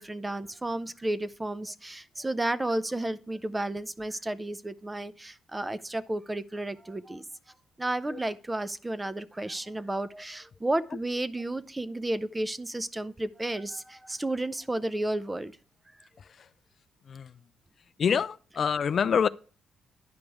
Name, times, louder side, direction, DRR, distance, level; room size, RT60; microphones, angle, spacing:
voice 1, 0.0-7.2 7.8-15.5 16.0-16.1, right 1 dB, 15° right, 0.6 m, -32 dB
voice 2, 18.0-19.3, left 7 dB, 50° left, 0.3 m, -25 dB
10.0 x 5.2 x 4.8 m
cardioid pair, 90°, 0 cm